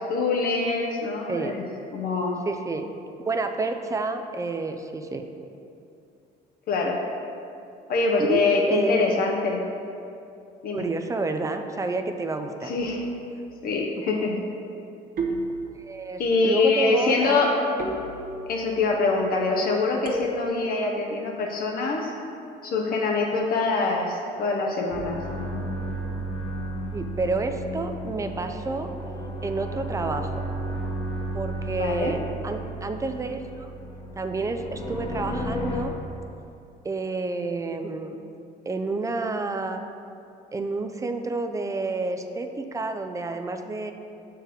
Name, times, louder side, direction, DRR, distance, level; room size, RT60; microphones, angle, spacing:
voice 1, 0.0-1.6 1.9-2.4 6.7-7.0 7.9-9.6 10.6-10.8 12.6-13.0 13.6-14.4 16.2-17.9 18.5-22.1 22.6-25.2 31.7-32.1, left 3 dB, 60° left, 0 dB, 0.8 m, -24 dB
voice 2, 2.5-2.9 3.2-5.2 8.3-9.0 10.7-12.7 14.0-14.1 15.8-17.5 26.9-28.9 29.4-30.3 31.3-32.2 32.4-33.7 34.2-35.9 36.8-38.2 38.7-39.8 40.5-43.9, right 3 dB, 20° right, 6 dB, 0.4 m, -29 dB
sound 1, 12.8-13.3 15.2-16.1 17.8-18.7 20.0-20.8, right 2 dB, 55° right, 0.9 m, -33 dB
sound 2, 24.9-35.8, right 1 dB, 35° left, 1.1 m, -33 dB
6.5 x 4.6 x 4.9 m, 2.6 s
cardioid pair, 110°, 17 cm